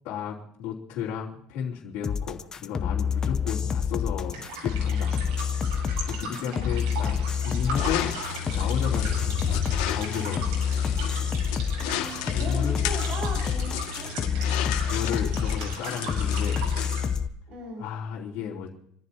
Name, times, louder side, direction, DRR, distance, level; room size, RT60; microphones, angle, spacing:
voice 1, 0.0-5.1 6.1-8.1 8.5-9.6 9.9-10.6 12.3-12.8 13.6-13.7 14.8-16.6 17.8-18.7, left 8 dB, 55° left, -8 dB, 3.3 m, -33 dB
sound 1, 2.0-17.3, left 7 dB, 20° left, 0.7 m, -27 dB
sound 2, 4.3-17.1, right 3 dB, 85° right, 7.7 m, -39 dB
voice 2, 6.4-6.9 11.8-14.1 17.5-17.9, right 1 dB, 40° right, 0 dB, 6.2 m, -38 dB
sound 3, 7.7-17.1, left 11 dB, 75° left, 1.9 m, -34 dB
28.5 x 14.0 x 2.9 m, 0.72 s
cardioid pair, 155°, 3 cm